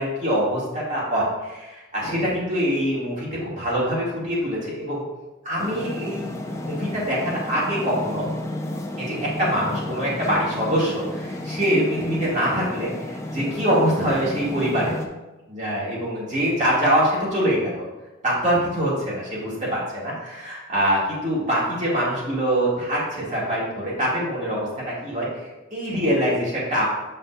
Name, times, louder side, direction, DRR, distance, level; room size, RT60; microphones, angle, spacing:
voice 1, 0.0-5.0 5.4-6.3 6.6-8.3 9.0-14.9 15.5-17.8 18.2-25.3 25.7-26.8, equal, 35° right, -6 dB, 2.2 m, -24 dB
sound 1, 5.6-15.1, left 1 dB, 15° left, 0.5 m, -32 dB
7.4 x 5.6 x 2.5 m, 1.1 s
head